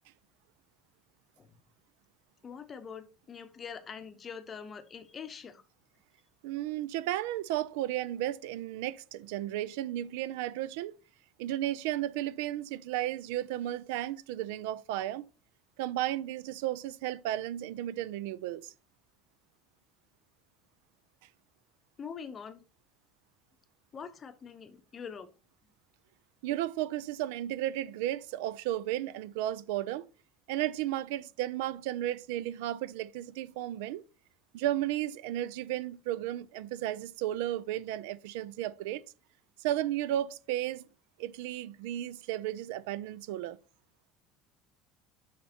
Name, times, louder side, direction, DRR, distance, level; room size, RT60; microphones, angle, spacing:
voice 1, 2.4-5.6 22.0-22.6 23.9-25.3, left 6 dB, 20° left, 0.7 m, -44 dB
voice 2, 6.4-11.0 11.4-15.3 15.8-18.7 26.4-30.1 30.5-34.0 34.5-39.0 39.6-40.8 41.2-43.6, right 13 dB, 90° right, 0.5 m, -34 dB
7.4 x 5.8 x 2.9 m
cardioid pair, 180°, 0 cm